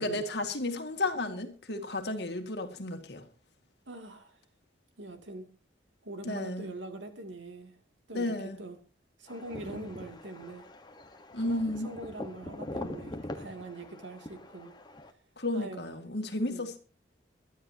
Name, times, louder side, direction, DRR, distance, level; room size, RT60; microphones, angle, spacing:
voice 1, 0.0-3.3 6.2-6.7 8.1-8.6 11.3-11.9 15.4-16.8, left 2 dB, 60° left, 2.1 m, -33 dB
voice 2, 3.9-4.4 5.0-5.5 6.0-7.8 8.1-8.8 9.2-10.7 11.3-14.7 15.5-15.9 16.5-16.7, right 2 dB, 85° right, 2.7 m, -43 dB
sound 1, 9.3-15.1, left 1 dB, 25° left, 1.3 m, -43 dB
23.5 x 12.5 x 2.9 m
head